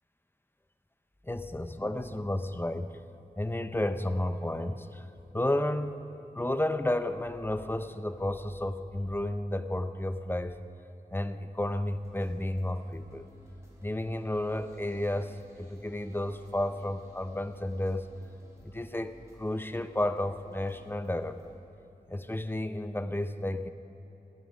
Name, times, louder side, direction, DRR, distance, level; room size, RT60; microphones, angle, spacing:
voice 1, 1.2-3.0 3.4-5.0 5.3-6.0 6.3-10.6 11.1-13.3 13.8-18.1 18.6-21.5 22.1-23.7, left 1 dB, 15° left, 10 dB, 0.6 m, -32 dB
sound 1, 11.5-21.6, equal, 15° right, 4.0 m, -57 dB
19.0 x 14.0 x 5.1 m, 3.0 s
wide cardioid pair, 85°, 17 cm